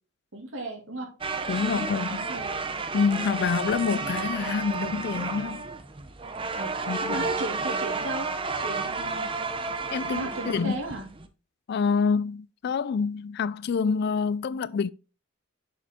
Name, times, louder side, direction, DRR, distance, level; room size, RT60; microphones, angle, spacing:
voice 1, 0.3-1.1 1.6-2.5 6.5-6.7 7.0-8.3 8.6-9.4 10.1-11.0, right 1 dB, 70° right, 2.4 m, -35 dB
sound 1, 1.2-11.3, right 4 dB, 25° right, 0.6 m, -31 dB
voice 2, 1.5-2.3 2.9-5.6 6.9-7.2 9.9-10.7 11.7-14.9, left 5 dB, 55° left, 0.3 m, -27 dB
6.9 x 5.2 x 3.6 m
head